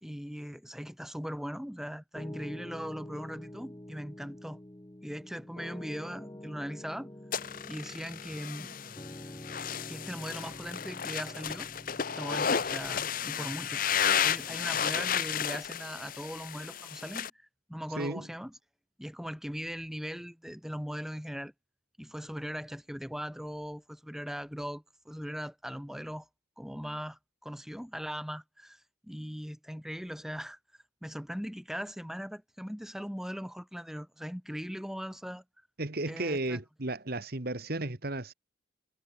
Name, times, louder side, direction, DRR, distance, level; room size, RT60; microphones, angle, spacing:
voice 1, 0.0-4.6 5.0-7.1 7.7-8.8 9.9-11.7 12.1-13.8 14.2-17.3 17.7-18.5 19.0-21.5 22.0-26.3 26.6-30.6 31.0-35.4 36.0-36.6, equal, ahead, 2.2 m, -39 dB
Piano, 2.1-15.5, left 1 dB, 20° left, 1.0 m, -48 dB
sound 1, 7.3-17.3, left 8 dB, 45° left, 0.7 m, -33 dB
voice 2, 18.0-18.3 35.8-38.3, right 2 dB, 50° right, 1.6 m, -34 dB
head